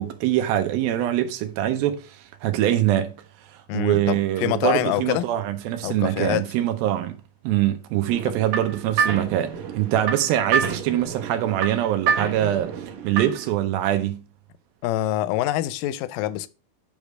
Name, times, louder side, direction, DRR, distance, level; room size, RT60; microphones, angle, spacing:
voice 1, 0.0-3.1 3.7-7.2 7.4-12.7 13.0-14.2, right 12 dB, 85° right, 2.6 m, -23 dB
voice 2, 3.7-5.3 5.8-6.5 8.3-8.4 14.8-16.5, left 14 dB, 80° left, 2.1 m, -25 dB
sound 1, 8.1-13.5, right 6 dB, 70° right, 2.4 m, -28 dB
8.3 x 3.5 x 6.4 m
omnidirectional pair, 4.2 m